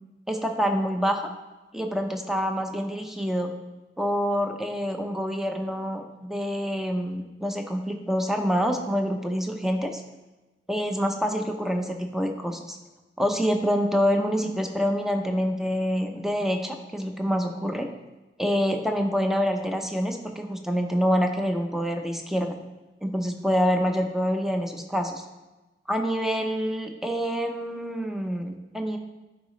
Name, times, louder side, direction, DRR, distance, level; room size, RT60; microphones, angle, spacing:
voice 1, 0.3-1.3 1.7-3.5 4.0-10.0 10.7-12.8 13.2-17.9 18.4-22.5 23.0-25.2 25.9-29.0, equal, ahead, 4 dB, 0.6 m, -26 dB
10.0 x 4.9 x 3.1 m, 1.1 s
head